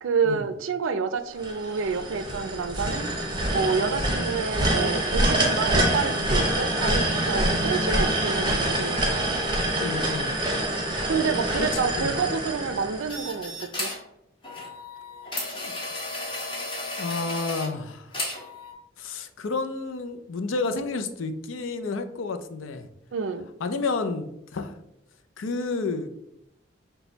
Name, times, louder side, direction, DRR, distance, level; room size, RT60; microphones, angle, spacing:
voice 1, 0.0-3.1 3.5-9.1 11.1-13.9 23.1-23.5, right 5 dB, 90° right, 11 dB, 0.4 m, -28 dB
sound 1, 1.4-13.5, right 1 dB, 25° right, 0.7 m, -26 dB
voice 2, 7.5-7.8 9.8-10.4 11.6-12.1 15.6-15.7 17.0-18.1 19.0-22.9 23.6-24.7 25.4-26.2, left 3 dB, 90° left, 8 dB, 0.5 m, -31 dB
sound 2, 13.1-14.1 14.4-17.7 18.1-18.7, left 2 dB, 25° left, 0.9 m, -34 dB
6.0 x 2.2 x 3.9 m, 0.81 s
head